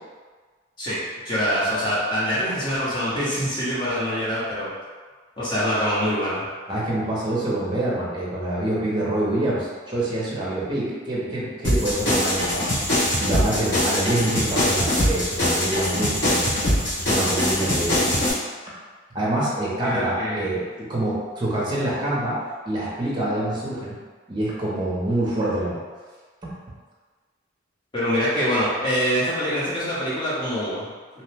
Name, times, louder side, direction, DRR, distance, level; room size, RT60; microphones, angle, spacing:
voice 1, 0.8-4.7 5.4-6.4 19.8-20.5 27.9-30.9, equal, 25° left, -9 dB, 0.8 m, -24 dB
voice 2, 6.7-16.5 17.0-18.2 19.1-23.9 24.3-25.8 26.4-26.5, right 1 dB, 25° right, -6 dB, 0.6 m, -26 dB
sound 1, 11.6-18.3, left 1 dB, 70° left, 1.2 m, -22 dB
2.8 x 2.1 x 3.2 m, 1.5 s
head